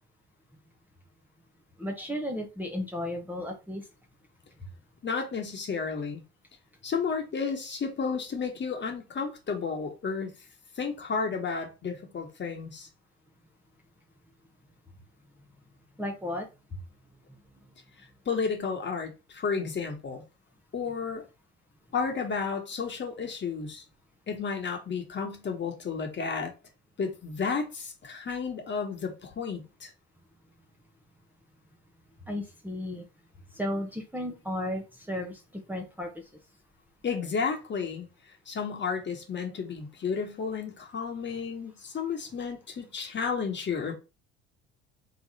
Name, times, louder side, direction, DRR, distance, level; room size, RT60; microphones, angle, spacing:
voice 1, 1.8-3.8 16.0-16.5 32.3-33.0 33.5-35.4 35.7-36.1, left 1 dB, 5° right, 1.1 m, -34 dB
voice 2, 5.0-6.2 6.8-10.3 10.8-12.9 18.2-20.2 20.7-21.2 21.9-23.8 24.3-26.5 27.0-29.9 37.0-38.1 38.5-43.9, left 5 dB, 35° left, 1.5 m, -32 dB
3.4 x 3.2 x 4.2 m
hypercardioid pair, 75°, 32 cm